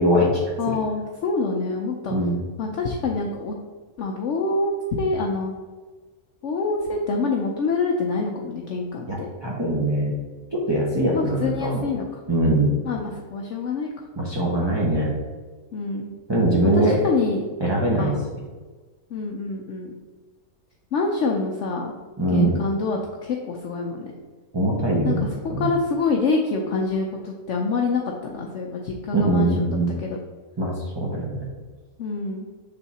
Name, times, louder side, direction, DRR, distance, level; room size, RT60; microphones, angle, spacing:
voice 1, 0.0-0.4 2.1-2.4 9.1-10.1 10.7-11.8 12.3-12.7 14.2-15.1 16.3-16.9 17.6-18.1 22.2-22.5 24.5-25.7 29.1-29.9 30.6-31.5, right 1 dB, 25° right, -4 dB, 0.6 m, -22 dB
voice 2, 0.6-2.2 2.6-3.5 4.0-5.5 6.4-9.3 11.1-12.0 12.8-14.1 15.7-16.1 16.7-17.4 17.9-18.2 19.1-19.9 20.9-21.9 22.3-24.1 25.0-30.2 32.0-32.5, left 3 dB, 65° left, 0 dB, 0.8 m, -26 dB
6.5 x 3.5 x 4.1 m, 1.4 s
omnidirectional pair, 1.6 m